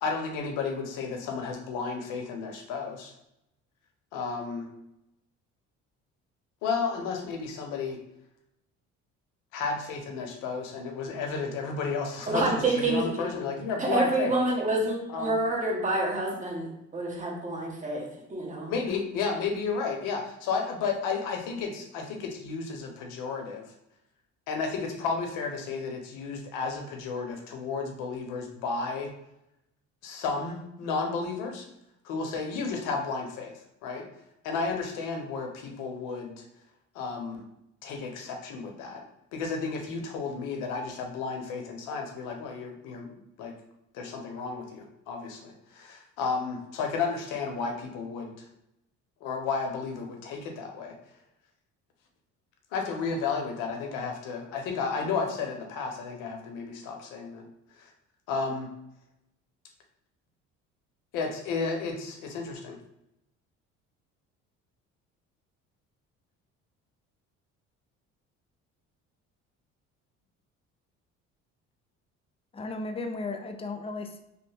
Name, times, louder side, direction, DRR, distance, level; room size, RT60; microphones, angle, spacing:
voice 1, 0.0-3.1 4.1-4.7 6.6-8.0 9.5-14.3 15.1-15.4 18.7-23.6 24.5-29.1 30.0-31.7 32.0-34.1 34.4-36.4 36.9-37.4 37.8-39.0 39.3-43.5 43.9-48.3 49.2-51.0 52.7-57.5 57.8-57.9 58.3-58.7 61.1-62.8, left 4 dB, 85° left, 3 dB, 0.8 m, -32 dB
voice 2, 12.3-13.3 13.8-18.0 18.3-18.7, right 2 dB, 25° right, -1 dB, 1.1 m, -28 dB
voice 3, 72.5-74.2, left 3 dB, 20° left, 6 dB, 0.4 m, -35 dB
3.1 x 2.1 x 3.3 m, 0.84 s
supercardioid pair, 85°, 31 cm